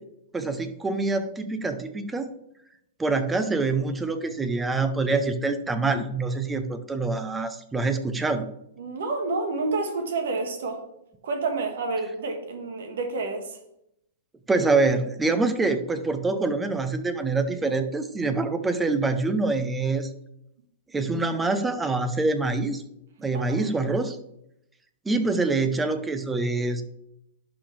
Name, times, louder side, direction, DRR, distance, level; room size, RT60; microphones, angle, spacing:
voice 1, 0.3-2.3 3.0-8.5 14.5-20.1 20.9-22.8 23.2-24.2 25.0-26.8, right 3 dB, 10° right, 9 dB, 0.8 m, -25 dB
voice 2, 8.8-10.8 11.2-13.6 23.3-23.6, right 3 dB, 75° right, 5 dB, 1.5 m, -29 dB
11.5 x 4.2 x 3.3 m, 0.78 s
hypercardioid pair, 120°, 0 cm